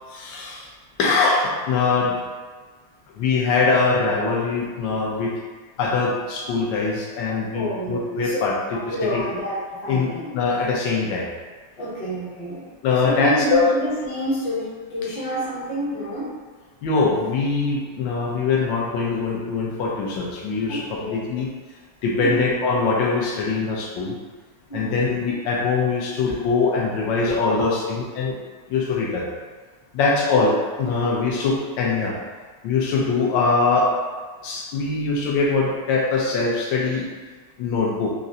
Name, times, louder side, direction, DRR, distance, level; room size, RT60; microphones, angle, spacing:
voice 1, 0.1-0.7 1.0-2.1 3.1-5.3 5.8-8.5 8.9-9.2 9.9-11.3 12.8-13.7 16.8-21.5 22.0-24.1 24.7-28.4 28.7-29.3 29.9-32.2 32.6-33.9 34.4-37.1 37.6-38.1, left 4 dB, 85° left, -3 dB, 1.3 m, -22 dB
voice 2, 7.5-8.4 8.9-10.3 11.8-12.7 13.0-16.3 20.7-21.4 22.2-22.6 24.7-25.2 27.3-27.4, equal, 45° left, -7 dB, 0.7 m, -28 dB
3.7 x 2.0 x 2.6 m, 1.4 s
omnidirectional pair, 2.0 m